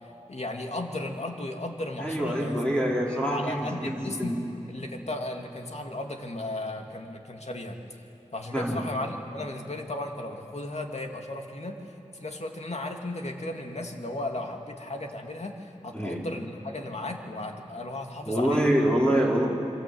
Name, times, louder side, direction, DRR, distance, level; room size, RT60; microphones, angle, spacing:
voice 1, 0.3-2.7 3.1-4.4 4.7-7.8 8.3-18.7, left 1 dB, 60° left, 3 dB, 2.7 m, -35 dB
voice 2, 2.0-4.4 8.5-8.9 15.9-16.2 18.2-19.5, equal, 10° left, -4 dB, 4.8 m, -25 dB
27.0 x 24.0 x 8.0 m, 2.7 s
wide cardioid pair, 45°, 13 cm